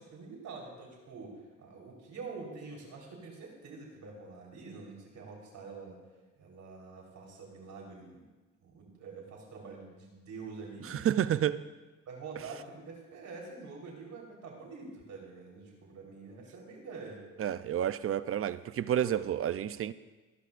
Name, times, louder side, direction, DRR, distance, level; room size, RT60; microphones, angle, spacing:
voice 1, 0.0-6.0 6.4-8.2 8.6-11.0 12.1-17.2, right 4 dB, 70° right, 4.1 m, -46 dB
voice 2, 10.9-11.7 17.4-19.9, right 10 dB, 50° right, 0.5 m, -30 dB
25.5 x 11.5 x 2.5 m
cardioid pair, 90°, 30 cm